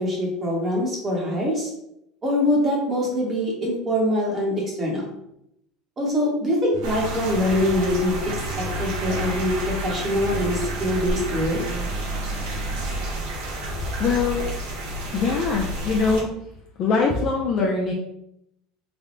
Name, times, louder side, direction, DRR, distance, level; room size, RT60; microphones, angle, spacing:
voice 1, 0.0-1.7 2.2-5.1 6.0-8.1 8.6-11.7, left 1 dB, 25° right, -2 dB, 0.9 m, -24 dB
sound 1, 6.7-9.7 10.2-13.2 13.6-13.7, right 3 dB, 50° right, 0.5 m, -37 dB
sound 2, 6.8-16.2, right 1 dB, 85° right, 1.1 m, -30 dB
voice 2, 14.0-14.4 15.1-16.3 16.8-17.9, left 4 dB, 40° left, -1 dB, 0.5 m, -22 dB
3.4 x 2.1 x 3.7 m, 0.79 s
cardioid pair, 155°, 0 cm